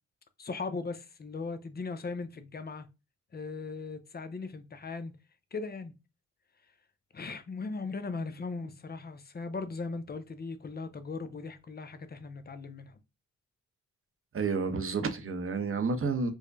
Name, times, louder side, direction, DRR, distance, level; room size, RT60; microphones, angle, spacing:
voice 1, 0.4-2.9 3.3-5.1 5.5-5.9 7.1-13.0, left 4 dB, 30° left, 0.6 m, -38 dB
voice 2, 14.3-16.3, right 4 dB, 40° right, 0.8 m, -30 dB
4.7 x 2.1 x 2.5 m
cardioid pair, 50°, 33 cm